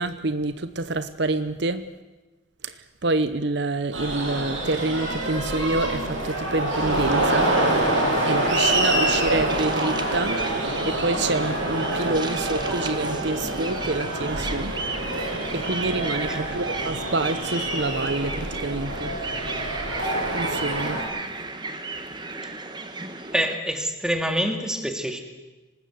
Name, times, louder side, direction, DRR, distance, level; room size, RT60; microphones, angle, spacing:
voice 1, 0.0-1.9 2.6-7.5 8.2-14.7 15.2-19.1 20.3-21.0, right 2 dB, 60° right, 12 dB, 0.9 m, -27 dB
sound 1, 3.9-21.0, right 1 dB, 90° right, 7.9 m, -26 dB
sound 2, 9.5-23.6, right 3 dB, 25° right, 1.6 m, -34 dB
voice 2, 23.3-25.2, equal, 5° right, 5 dB, 2.3 m, -26 dB
25.0 x 19.5 x 7.9 m, 1.2 s
head